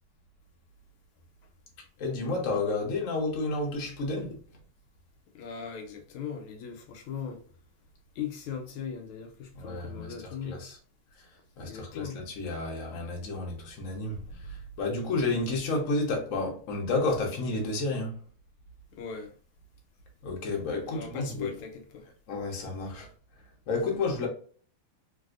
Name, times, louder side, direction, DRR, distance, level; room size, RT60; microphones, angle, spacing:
voice 1, 2.0-4.3 9.5-10.8 11.6-14.2 14.8-18.2 20.2-21.5 22.3-23.1 23.7-24.3, left 3 dB, 55° left, 0.9 m, -31 dB
voice 2, 5.3-7.4 8.2-10.7 11.6-12.2 14.1-14.4 19.0-19.3 20.9-22.1, left 7 dB, 80° left, 1.5 m, -39 dB
3.4 x 2.6 x 2.4 m
omnidirectional pair, 2.4 m